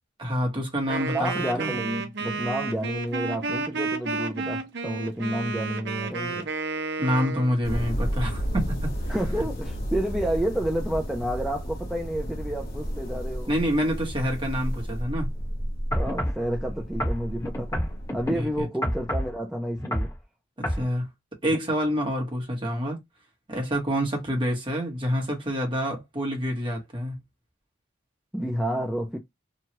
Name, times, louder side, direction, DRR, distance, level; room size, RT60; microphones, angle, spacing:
voice 1, 0.2-1.3 1.6-1.7 7.0-8.9 13.5-15.3 18.3-18.7 20.6-21.1 21.4-23.0 23.5-27.2, equal, 25° right, 1.1 m, -27 dB
Wind instrument woodwind instrument, 0.9-7.5, right 4 dB, 60° right, 0.7 m, -31 dB
voice 2, 1.1-6.5 9.1-13.5 15.9-20.1 28.3-29.2, right 1 dB, 5° right, 0.5 m, -30 dB
sound 1, 7.6-18.6, equal, 55° left, 1.0 m, -32 dB
sound 2, 15.9-16.4 17.0-18.3 18.8-19.3 19.8-20.1 20.6-20.8 21.5-21.6, equal, 15° left, 1.2 m, -28 dB
3.0 x 2.3 x 2.8 m
head